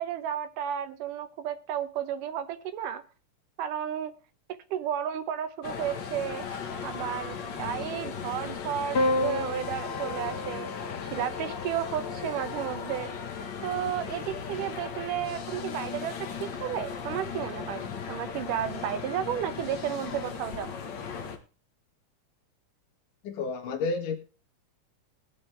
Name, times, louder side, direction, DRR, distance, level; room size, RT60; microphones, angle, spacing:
voice 1, 0.0-3.0 3.6-4.1 4.7-10.7 11.1-13.1 13.6-20.7, right 10 dB, 80° right, 2.5 m, -33 dB
sound 1, 5.6-21.4, left 6 dB, 50° left, 1.4 m, -37 dB
Piano, 8.9-13.4 14.6-15.3, left 1 dB, 35° left, 2.7 m, -33 dB
voice 2, 23.2-24.2, left 4 dB, 80° left, 3.0 m, -30 dB
19.0 x 7.4 x 3.3 m
omnidirectional pair, 3.7 m